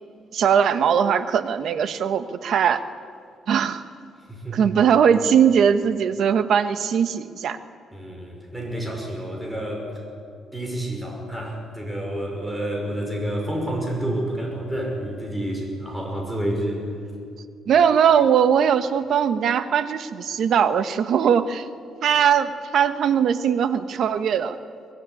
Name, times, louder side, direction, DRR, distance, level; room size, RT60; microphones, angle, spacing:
voice 1, 0.3-2.8 3.5-3.8 4.5-7.6 17.7-21.7 22.0-24.6, right 8 dB, 60° right, 11 dB, 1.2 m, -20 dB
voice 2, 4.3-4.7 7.9-9.9 10.5-16.9, right 1 dB, 10° right, 0 dB, 5.8 m, -29 dB
23.0 x 19.5 x 9.9 m, 2.4 s
cardioid pair, 150°, 0 cm